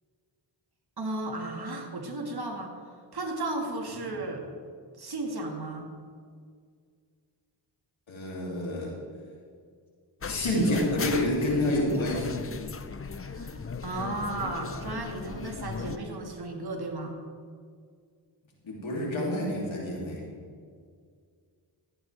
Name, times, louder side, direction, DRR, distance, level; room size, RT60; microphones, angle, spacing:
voice 1, 1.0-2.7 3.1-4.5 5.0-5.9 13.1-17.2, right 2 dB, 50° right, 2 dB, 1.9 m, -34 dB
voice 2, 8.1-8.9 10.2-12.4 18.6-20.2, left 1 dB, 75° left, -3 dB, 3.0 m, -28 dB
sound 1, 10.2-16.0, left 5 dB, 30° left, 0.6 m, -36 dB
14.0 x 8.8 x 3.4 m, 2.1 s
cardioid pair, 50°, 47 cm